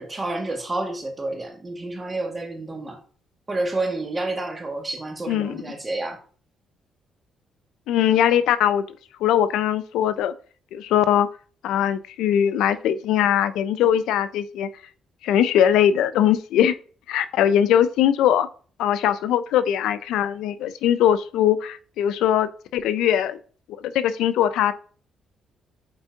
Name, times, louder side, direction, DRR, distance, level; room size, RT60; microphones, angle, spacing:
voice 1, 0.0-3.0 3.5-6.2, right 2 dB, 25° right, 2 dB, 1.9 m, -29 dB
voice 2, 5.3-5.6 7.9-8.8 9.2-10.3 10.7-11.3 11.6-14.7 15.2-16.7 17.1-18.5 18.8-23.4 23.8-24.7, left 10 dB, 85° left, 14 dB, 0.4 m, -21 dB
7.7 x 4.4 x 2.7 m, 0.41 s
cardioid pair, 90°, 0 cm